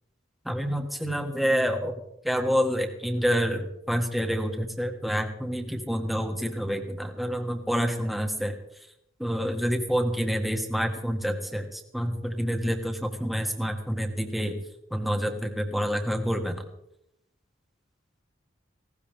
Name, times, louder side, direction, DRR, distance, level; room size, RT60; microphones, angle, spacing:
voice 1, 0.4-1.9 2.2-8.6 9.2-14.6 14.9-16.6, equal, ahead, 3 dB, 1.7 m, -28 dB
19.0 x 17.5 x 3.6 m, 0.79 s
head